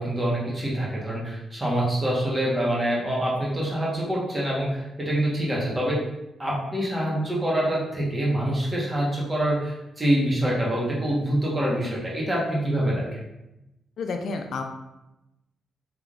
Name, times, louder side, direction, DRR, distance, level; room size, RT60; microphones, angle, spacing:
voice 1, 0.0-6.0 6.4-13.2, right 1 dB, 20° right, -5 dB, 1.1 m, -25 dB
voice 2, 14.0-14.6, left 4 dB, 70° left, 4 dB, 0.4 m, -30 dB
3.5 x 3.3 x 2.4 m, 0.94 s
cardioid pair, 105°, 0 cm